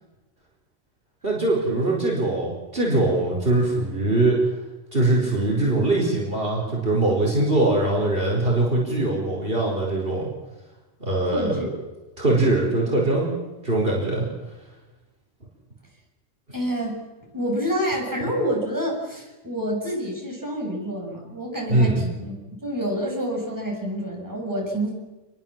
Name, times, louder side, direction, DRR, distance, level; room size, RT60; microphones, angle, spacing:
voice 1, 1.2-4.4 4.9-10.3 11.0-11.5 12.2-13.3 13.6-14.2 21.7-22.0, right 2 dB, 45° right, -2 dB, 5.1 m, -22 dB
voice 2, 11.2-11.7 16.5-17.0 17.3-22.3 22.6-24.9, equal, 15° right, -1 dB, 6.8 m, -27 dB
27.5 x 21.5 x 7.5 m, 1.1 s
omnidirectional pair, 1.3 m